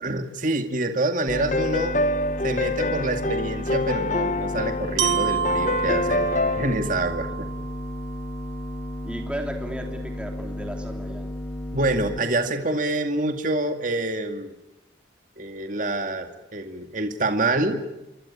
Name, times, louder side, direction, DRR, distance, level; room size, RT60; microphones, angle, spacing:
voice 1, 0.0-2.0 2.4-6.3 6.6-7.5 11.7-14.5 15.4-17.8, right 2 dB, 45° right, 6 dB, 2.3 m, -26 dB
sound 1, 1.3-6.8, left 2 dB, 40° left, 1.1 m, -26 dB
sound 2, 1.3-12.2, left 1 dB, 15° left, 3.1 m, -33 dB
Glockenspiel, 5.0-8.9, right 10 dB, 85° right, 1.4 m, -30 dB
voice 2, 9.0-11.3, equal, 5° right, 3 dB, 3.1 m, -35 dB
28.0 x 24.5 x 8.6 m, 0.96 s
head